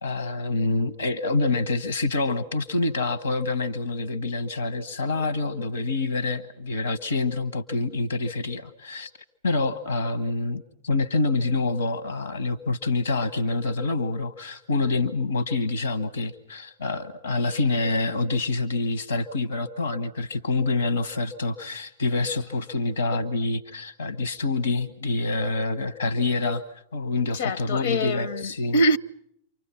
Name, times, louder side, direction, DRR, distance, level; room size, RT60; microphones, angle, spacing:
voice 1, 0.0-9.1 9.4-28.7, left 3 dB, 80° left, 1.4 m, -26 dB
voice 2, 27.3-29.0, equal, 60° left, 0.9 m, -24 dB
29.5 x 25.0 x 5.8 m
figure-of-eight pair, 95°, 0 cm